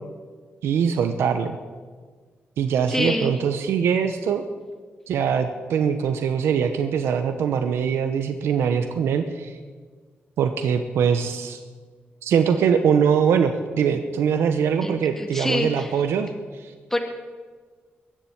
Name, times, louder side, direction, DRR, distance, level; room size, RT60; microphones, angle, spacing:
voice 1, 0.6-1.5 2.6-4.4 5.1-9.6 10.4-11.6 12.2-16.3 16.5-16.7, right 7 dB, 90° right, 7 dB, 0.9 m, -22 dB
voice 2, 2.9-3.3 14.8-16.0 16.9-17.0, left 1 dB, 10° left, 2 dB, 2.2 m, -26 dB
22.0 x 7.4 x 8.7 m, 1.5 s
cardioid pair, 90°, 4 cm